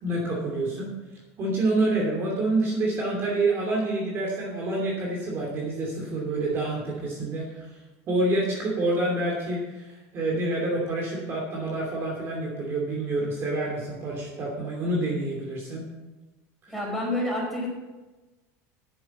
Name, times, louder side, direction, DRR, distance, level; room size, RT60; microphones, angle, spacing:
voice 1, 0.0-0.9 1.4-7.7 8.1-15.9 16.6-16.7, right 2 dB, 35° right, -2 dB, 2.8 m, -27 dB
voice 2, 16.7-17.7, left 1 dB, ahead, -4 dB, 4.9 m, -28 dB
10.0 x 7.8 x 7.1 m, 1.1 s
supercardioid pair, 135°, 7 cm